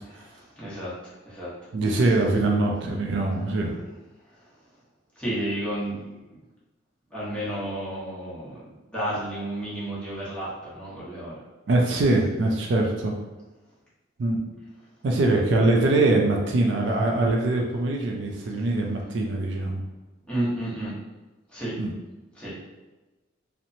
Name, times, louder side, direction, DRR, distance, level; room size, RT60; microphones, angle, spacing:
voice 1, 0.2-1.5 5.2-5.9 6.3-6.4 7.1-8.6 8.9-11.4 20.3-20.9 21.5-21.7 22.4-22.5, right 1 dB, 5° left, -9 dB, 0.8 m, -31 dB
voice 2, 1.7-3.8 11.7-13.1 14.2-14.4 15.0-19.8 21.8-21.9, right 2 dB, 60° right, 1 dB, 0.3 m, -23 dB
2.9 x 2.0 x 2.6 m, 1.1 s
head